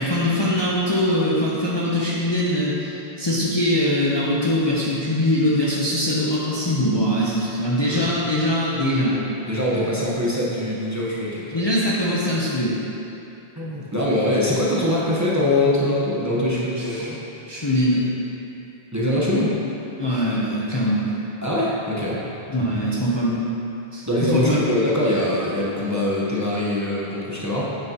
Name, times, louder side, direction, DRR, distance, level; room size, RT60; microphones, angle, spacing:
voice 1, 0.0-9.2 11.5-12.8 16.8-17.1 17.5-18.0 20.0-21.1 22.5-23.4 23.9-24.7, left 1 dB, 25° left, -7 dB, 0.8 m, -22 dB
voice 2, 9.5-11.6 13.6-17.2 18.9-19.5 21.4-22.2 24.1-27.6, left 1 dB, 15° right, -7 dB, 1.0 m, -23 dB
8.6 x 7.2 x 2.9 m, 2.9 s
omnidirectional pair, 1.1 m